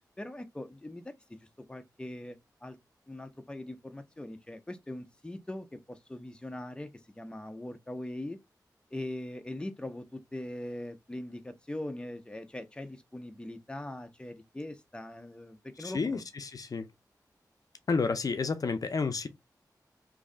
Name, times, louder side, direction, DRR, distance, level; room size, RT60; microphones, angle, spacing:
voice 1, 0.2-1.4 1.7-2.8 3.1-6.9 7.2-8.4 8.9-16.2, left 1 dB, 15° left, 0.6 m, -41 dB
voice 2, 15.8-16.9 17.9-19.3, left 4 dB, 60° left, 0.5 m, -30 dB
3.1 x 2.6 x 3.7 m
wide cardioid pair, 80°, 7 cm